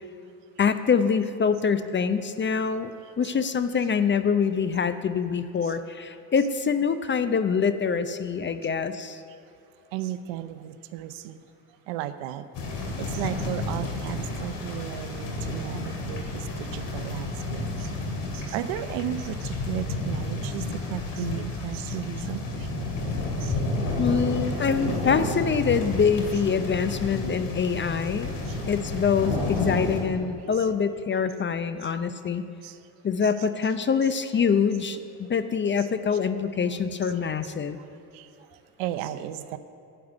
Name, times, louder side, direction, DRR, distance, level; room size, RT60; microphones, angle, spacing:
voice 1, 0.6-2.9 3.2-9.2 24.0-28.3 28.7-32.4 33.0-37.8, left 6 dB, 25° left, 11 dB, 0.6 m, -25 dB
voice 2, 9.9-11.5 11.9-12.4 12.9-18.0 18.3-22.7 23.4-23.6 28.5-28.6 32.6-32.8 37.8-37.9 38.1-39.6, right 12 dB, 70° right, 12 dB, 0.7 m, -35 dB
sound 1, 12.5-30.0, left 2 dB, 60° left, 2.5 m, -31 dB
9.5 x 8.0 x 7.9 m, 2.7 s
hypercardioid pair, 65°, 47 cm